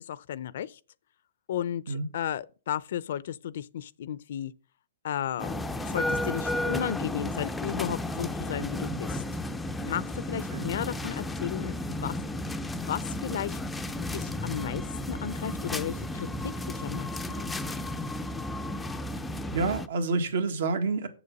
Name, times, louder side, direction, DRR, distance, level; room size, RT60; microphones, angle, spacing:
voice 1, 0.1-0.8 1.5-4.5 5.0-9.2 9.9-12.1 12.7-13.6 14.1-17.8, left 10 dB, 60° left, 0.5 m, -34 dB
sound 1, 5.4-19.9, left 1 dB, 5° left, 0.4 m, -33 dB
voice 2, 19.5-21.1, right 4 dB, 75° right, 1.6 m, -28 dB
7.2 x 6.9 x 5.3 m
hypercardioid pair, 155°, 0 cm